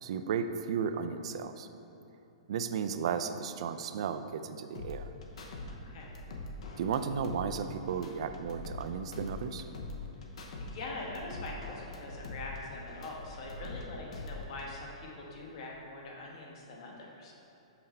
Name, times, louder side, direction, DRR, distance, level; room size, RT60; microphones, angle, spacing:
voice 1, 0.0-1.7 2.5-5.1 6.8-9.6, right 6 dB, 60° right, 9 dB, 0.4 m, -34 dB
sound 1, 4.7-5.7 6.0-8.9 9.1-10.7 11.0-13.8 14.1-14.7, left 2 dB, 70° left, 0.9 m, -43 dB
voice 2, 5.7-6.2 10.6-17.3, left 2 dB, 55° left, -2 dB, 1.3 m, -43 dB
5.8 x 5.4 x 4.2 m, 2.9 s
hypercardioid pair, 150°, 3 cm